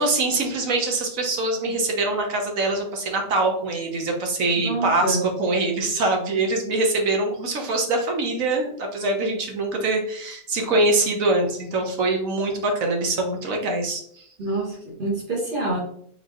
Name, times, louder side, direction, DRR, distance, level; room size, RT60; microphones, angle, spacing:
voice 1, 0.0-14.2, right 2 dB, 65° right, 2 dB, 1.3 m, -24 dB
voice 2, 4.6-5.2 14.4-15.8, right 2 dB, 40° right, -7 dB, 1.3 m, -26 dB
4.4 x 3.9 x 3.0 m, 0.65 s
omnidirectional pair, 1.6 m